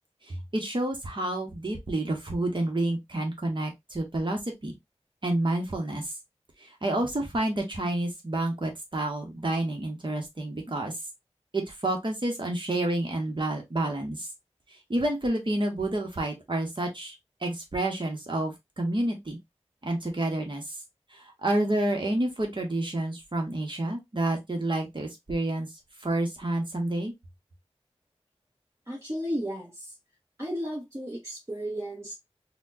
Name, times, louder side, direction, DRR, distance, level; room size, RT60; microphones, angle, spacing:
voice 1, 0.3-4.7 5.2-6.0 6.6-10.9 11.5-14.3 14.9-17.1 17.4-19.4 19.8-20.6 21.1-25.7 26.0-27.1, right 1 dB, 45° right, 1.1 m, -29 dB
voice 2, 28.9-29.7 30.4-32.1, equal, 25° right, 1.3 m, -33 dB
4.2 x 2.3 x 2.6 m
wide cardioid pair, 70°, 11 cm